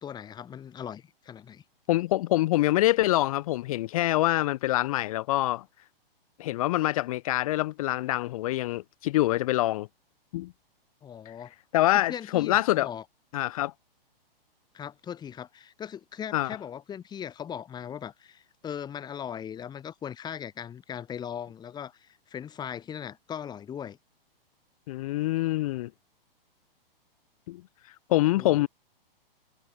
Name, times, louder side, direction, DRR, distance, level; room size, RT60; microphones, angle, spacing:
voice 1, 0.0-1.6 11.0-11.5 12.1-13.0 14.7-24.0 28.3-28.7, left 8 dB, 15° left, 1.3 m, -39 dB
voice 2, 1.9-5.6 6.4-9.9 10.3-10.5 11.7-12.9 13.3-13.7 16.3-16.6 24.9-25.9 27.5-27.6 28.1-28.7, left 16 dB, 40° left, 0.5 m, -25 dB
hypercardioid pair, 135°, 29 cm